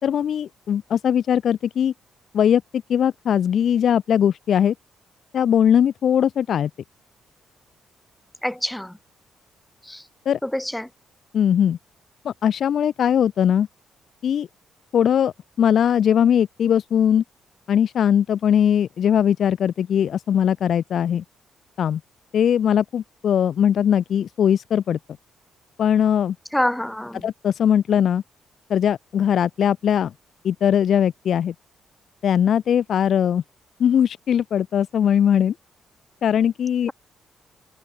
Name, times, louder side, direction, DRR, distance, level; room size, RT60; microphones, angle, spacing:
voice 1, 0.0-1.9 2.3-2.6 2.9-4.7 5.3-6.7 10.3-10.4 11.3-11.8 12.2-13.7 14.2-14.5 14.9-17.2 17.7-21.2 21.8-22.0 22.3-25.0 25.8-26.4 27.2-28.2 28.7-30.1 30.4-31.5 32.2-33.4 33.8-35.5 36.2-36.9, left 9 dB, 60° left, 3.7 m, -20 dB
voice 2, 8.4-9.0 9.8-10.0 10.4-10.9 26.5-27.3, left 1 dB, 5° left, 7.6 m, -26 dB
cardioid pair, 130°, 0 cm